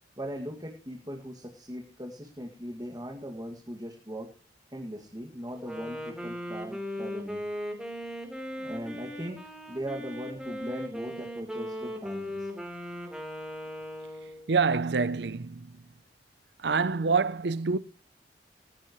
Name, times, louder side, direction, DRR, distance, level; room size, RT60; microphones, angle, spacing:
voice 1, 0.2-4.3 4.7-7.4 8.6-12.5, equal, 20° right, 2.2 m, -39 dB
Wind instrument woodwind instrument, 5.5-14.5, equal, 5° right, 3.9 m, -38 dB
voice 2, 14.5-15.9 16.6-17.8, right 4 dB, 65° right, 0.6 m, -26 dB
19.0 x 15.0 x 3.1 m
head